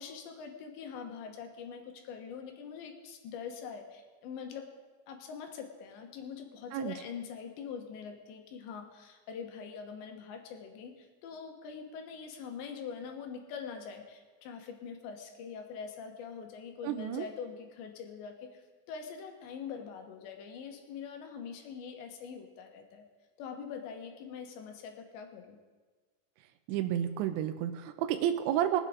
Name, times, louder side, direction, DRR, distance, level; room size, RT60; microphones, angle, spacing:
voice 1, 0.0-4.8 5.1-18.6 18.9-23.0 23.4-25.6, left 6 dB, 80° left, 4 dB, 3.4 m, -43 dB
voice 2, 16.8-17.2 26.7-28.8, right 11 dB, 85° right, 7 dB, 2.9 m, -31 dB
22.5 x 8.2 x 3.8 m, 1.4 s
omnidirectional pair, 5.2 m